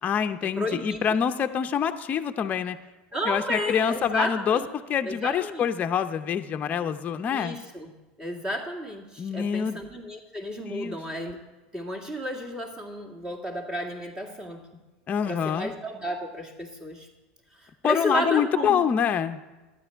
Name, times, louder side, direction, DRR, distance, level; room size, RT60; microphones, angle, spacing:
voice 1, 0.0-2.8 3.3-4.6 4.9-7.6 9.2-9.8 10.7-11.0 15.1-15.7 17.8-19.4, left 8 dB, 35° left, 7 dB, 0.6 m, -26 dB
voice 2, 0.6-1.1 3.1-4.7 5.0-5.7 7.3-7.9 8.2-11.4 11.7-14.6 15.3-17.1 17.5-18.8, equal, 15° right, 1 dB, 2.1 m, -32 dB
12.0 x 9.7 x 4.6 m, 1.1 s
supercardioid pair, 110°, 5 cm